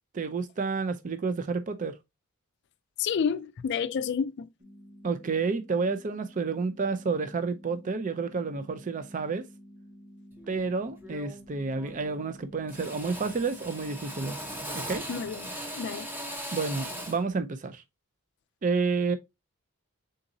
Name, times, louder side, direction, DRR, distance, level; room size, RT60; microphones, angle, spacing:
voice 1, 0.1-2.0 5.0-9.5 10.5-14.4 14.7-15.0 16.5-17.8 18.6-19.2, right 4 dB, 35° right, 0.4 m, -30 dB
voice 2, 3.0-4.5 15.1-16.1, left 7 dB, 50° left, 0.3 m, -30 dB
sound 1, 4.6-14.6, equal, 60° right, 2.2 m, -51 dB
Drill, 10.4-10.6 11.0-11.5 11.8-12.3 12.7-17.3, equal, 10° right, 0.8 m, -39 dB
4.0 x 3.8 x 2.6 m
head